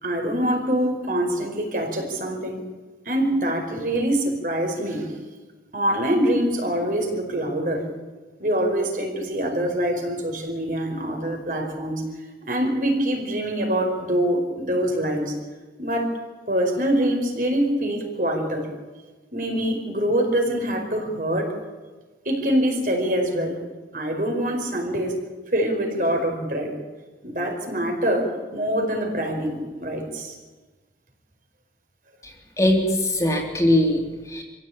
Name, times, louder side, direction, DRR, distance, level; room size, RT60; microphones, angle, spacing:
voice 1, 0.0-2.6 3.0-5.1 5.7-7.9 8.4-12.0 12.5-15.4 15.8-16.1 16.5-18.7 19.3-21.5 22.2-23.6 23.9-25.2 25.5-26.7 27.2-30.4, right 1 dB, 50° right, 3 dB, 4.9 m, -24 dB
voice 2, 32.2-34.4, left 1 dB, 20° left, 1 dB, 3.2 m, -21 dB
25.5 x 16.0 x 8.8 m, 1.3 s
head